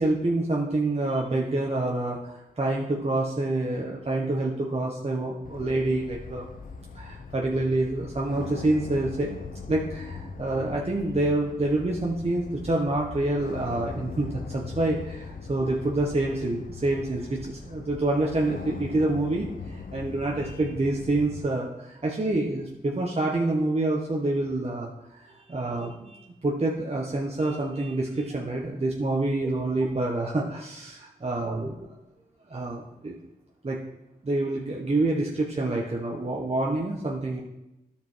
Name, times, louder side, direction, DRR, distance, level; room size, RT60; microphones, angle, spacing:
voice 1, 0.0-6.4 6.9-9.3 9.7-31.9 32.5-33.2 33.6-33.8 34.2-37.4, right 2 dB, 40° right, -2 dB, 1.3 m, -27 dB
sound 1, 5.4-21.5, left 4 dB, 55° left, 0.8 m, -40 dB
12.5 x 5.3 x 4.7 m, 0.93 s
cardioid pair, 55°, 16 cm